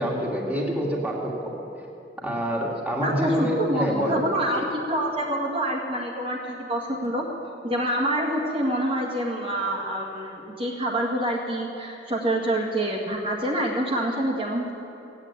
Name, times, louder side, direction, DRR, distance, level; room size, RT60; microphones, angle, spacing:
voice 1, 0.0-1.5 2.2-4.2, equal, 10° right, -3 dB, 2.5 m, -26 dB
voice 2, 3.0-7.2 7.6-14.7, right 1 dB, 30° right, -5 dB, 2.0 m, -26 dB
16.0 x 8.9 x 9.8 m, 2.9 s
head